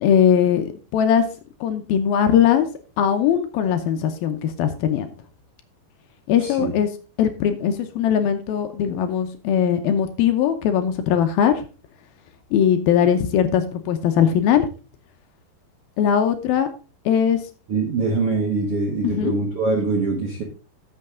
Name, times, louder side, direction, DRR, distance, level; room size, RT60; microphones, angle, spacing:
voice 1, 0.0-0.6 0.9-1.3 1.6-2.7 3.0-5.1 6.3-6.9 7.2-11.5 12.5-14.7 16.0-16.7 17.1-17.4 19.0-19.3, left 8 dB, 80° left, 8 dB, 2.2 m, -20 dB
voice 2, 6.4-6.7 17.7-20.4, right 3 dB, 85° right, 0 dB, 1.2 m, -23 dB
13.0 x 6.5 x 3.7 m, 0.34 s
omnidirectional pair, 5.1 m